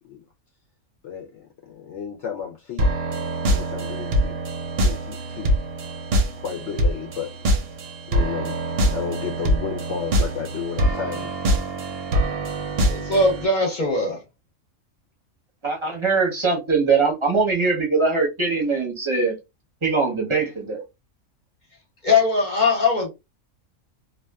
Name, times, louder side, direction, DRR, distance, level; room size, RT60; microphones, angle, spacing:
voice 1, 1.0-2.9 3.5-4.4 4.8-5.5 6.4-7.4 7.7-7.8 8.1-8.6 8.9-11.3, left 8 dB, 70° left, 0.8 m, -33 dB
sound 1, 2.8-13.5, right 1 dB, 60° right, 0.7 m, -24 dB
voice 2, 12.9-14.2 22.0-23.1, left 3 dB, 40° left, 0.9 m, -20 dB
voice 3, 15.6-19.3 19.8-20.8, right 4 dB, 30° right, 0.7 m, -22 dB
2.4 x 2.3 x 2.2 m
omnidirectional pair, 1.3 m